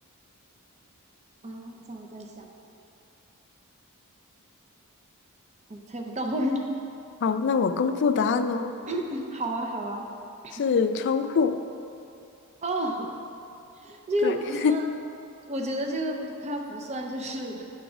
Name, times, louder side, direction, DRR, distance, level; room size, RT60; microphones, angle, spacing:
voice 1, 1.4-2.5 5.7-6.7 8.9-10.1 10.4-10.6 12.6-13.1 13.8-14.9 15.5-17.6, equal, 30° right, 1 dB, 0.5 m, -31 dB
voice 2, 7.2-8.7 10.5-11.6 14.2-14.3 14.6-14.8, left 5 dB, 55° left, 9 dB, 0.4 m, -24 dB
8.6 x 3.7 x 6.0 m, 2.7 s
head